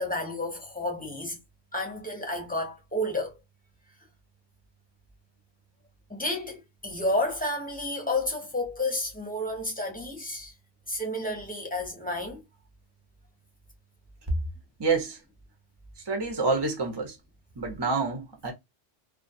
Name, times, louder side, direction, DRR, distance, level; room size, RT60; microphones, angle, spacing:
voice 1, 0.0-1.4 1.7-3.4 6.1-10.5 10.9-12.4, left 1 dB, 10° left, 0.7 m, -31 dB
voice 2, 14.8-15.2 16.0-17.2 17.6-18.5, right 4 dB, 30° right, 0.6 m, -28 dB
2.3 x 2.3 x 2.5 m
omnidirectional pair, 1.1 m